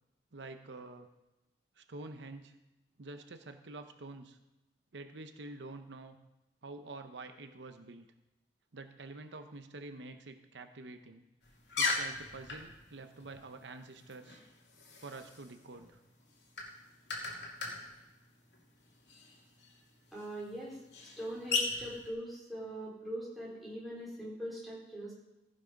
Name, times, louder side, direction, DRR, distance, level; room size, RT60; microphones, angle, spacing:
voice 1, 0.3-1.1 1.8-2.5 3.0-4.4 4.9-6.2 6.6-8.1 8.7-11.2 11.8-14.4 15.0-16.0, right 3 dB, 85° right, 7 dB, 0.8 m, -47 dB
sound 1, 11.4-22.1, left 3 dB, 80° left, 2.4 m, -40 dB
voice 2, 20.1-20.8 21.2-25.1, equal, ahead, -6 dB, 4.1 m, -42 dB
15.5 x 6.3 x 5.2 m, 0.98 s
head